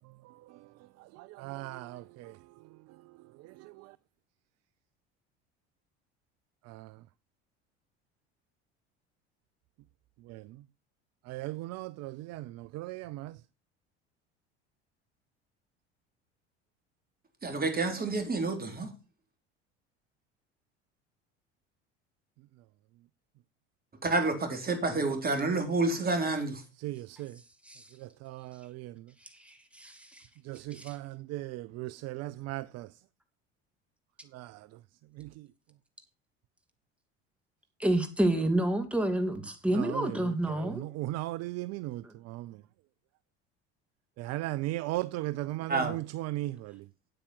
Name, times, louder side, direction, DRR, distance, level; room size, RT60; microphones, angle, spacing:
voice 1, 1.4-2.3 10.3-10.4 11.3-13.3 26.8-27.3 28.2-28.9 30.5-32.9 34.3-34.5 35.2-35.3 39.8-40.1 40.8-42.0 42.3-42.5 44.2-46.7, right 17 dB, 50° right, 0.5 m, -36 dB
voice 2, 17.4-18.9 24.0-26.6 45.7-46.0, right 3 dB, 30° right, 3.7 m, -29 dB
voice 3, 29.4-30.2 30.7-30.9 37.8-40.8 42.0-42.1, right 1 dB, 5° right, 2.5 m, -29 dB
8.9 x 8.7 x 5.8 m
hypercardioid pair, 75°, 33 cm